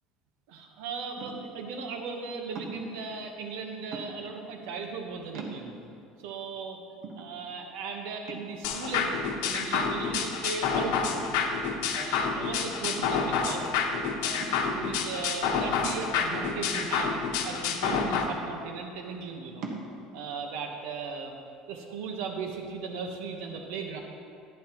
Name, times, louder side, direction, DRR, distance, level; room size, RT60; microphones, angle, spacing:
voice 1, 0.5-5.8 6.2-6.8 7.1-11.5 11.9-13.6 14.2-19.6 20.1-21.4 21.7-24.0, right 5 dB, 80° right, 3 dB, 1.1 m, -37 dB
sound 1, 1.2-1.6 2.5-3.0 3.9-4.4 4.9-5.0 5.3-6.0 6.5-6.6 7.0-7.8 8.3-8.7 9.7-10.5 11.2-11.8 12.1-12.2 12.8-13.3 14.4-14.9 15.8-16.7 17.9-18.5 19.6-19.9, right 4 dB, 55° right, 1.3 m, -41 dB
sound 2, 8.6-18.2, left 5 dB, 85° left, 1.0 m, -28 dB
11.5 x 11.0 x 3.0 m, 2.6 s
cardioid pair, 145°, 0 cm